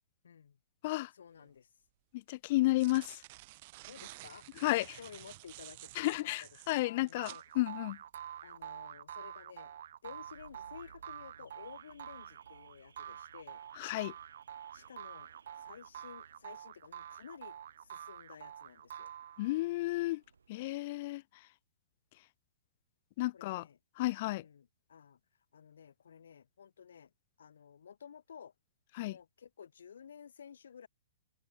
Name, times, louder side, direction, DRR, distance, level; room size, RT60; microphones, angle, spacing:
voice 1, 0.2-0.6 1.1-1.7 3.9-6.5 6.8-7.4 8.4-9.7 10.0-13.6 14.7-15.3 15.6-19.1 23.3-23.8 24.2-25.2 25.5-27.1 27.4-28.5 29.0-30.9, left 7 dB, 70° left, 3.4 m, -53 dB
sound 1, 1.4-1.5 2.5-7.5, right 21 dB, 45° right, 7.3 m, -52 dB
voice 2, 2.1-3.2 4.6-5.0 6.0-8.0 13.8-14.1 19.4-20.2 20.5-21.2 23.2-23.7 24.0-24.4 29.0-29.2, left 19 dB, 50° left, 0.3 m, -32 dB
sound 2, 7.2-19.7, right 10 dB, 65° right, 1.6 m, -47 dB
Car / Alarm, 10.0-21.2, right 5 dB, 80° right, 6.6 m, -64 dB
hypercardioid pair, 115°, 0 cm